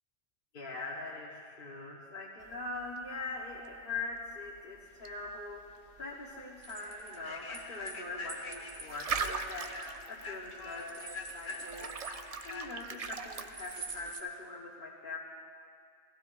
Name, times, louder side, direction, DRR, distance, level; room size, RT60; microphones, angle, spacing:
voice 1, 0.5-11.9 12.4-15.2, left 3 dB, 45° left, -6 dB, 1.3 m, -42 dB
sound 1, 2.4-14.1, right 5 dB, 75° right, 0.3 m, -43 dB
Human voice / Train, 5.3-5.4 5.9-6.1 6.6-14.2, left 3 dB, 80° left, 1.5 m, -46 dB
sound 2, 6.6-8.0 8.3-10.3 10.7-12.5 13.5-14.2, right 4 dB, 60° right, 1.2 m, -47 dB
18.0 x 15.0 x 2.5 m, 2.2 s
omnidirectional pair, 1.3 m